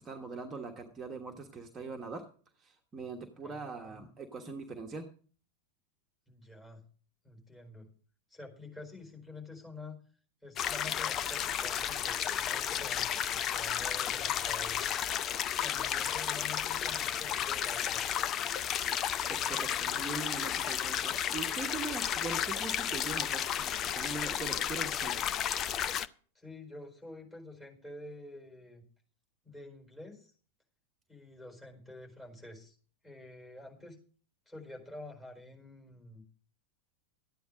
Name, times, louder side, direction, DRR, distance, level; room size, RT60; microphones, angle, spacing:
voice 1, 0.0-2.3 2.6-5.1 19.3-25.2, right 4 dB, 20° right, 2 dB, 1.3 m, -41 dB
voice 2, 3.4-4.1 6.3-6.8 7.2-7.9 8.3-10.0 10.4-14.9 15.6-18.0 26.3-28.8 29.4-30.3 31.1-32.8 33.0-34.0 34.5-36.2, left 2 dB, 10° left, 0 dB, 4.5 m, -48 dB
sound 1, 10.6-26.1, left 9 dB, 30° left, 0.6 m, -33 dB
13.5 x 9.4 x 5.1 m, 0.43 s
figure-of-eight pair, 90°, 0 cm